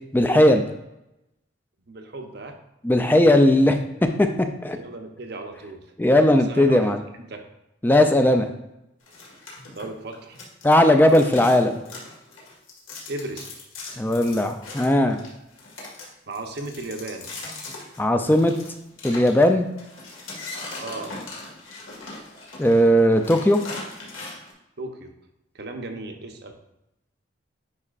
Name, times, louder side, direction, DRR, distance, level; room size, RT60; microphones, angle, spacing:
voice 1, 0.1-0.7 2.8-4.8 6.0-7.0 7.8-8.5 10.6-11.8 14.0-15.2 18.0-18.5 19.0-19.7 22.6-23.6, left 1 dB, 10° left, 6 dB, 0.3 m, -18 dB
voice 2, 1.9-2.6 4.7-7.5 9.7-10.4 13.1-13.5 16.3-17.3 20.8-21.1 24.8-25.1 25.5-26.5, right 2 dB, 55° right, 4 dB, 0.8 m, -35 dB
sound 1, 9.1-10.8 11.0-24.5, left 3 dB, 90° left, 1.9 m, -39 dB
9.6 x 4.9 x 2.5 m, 0.90 s
head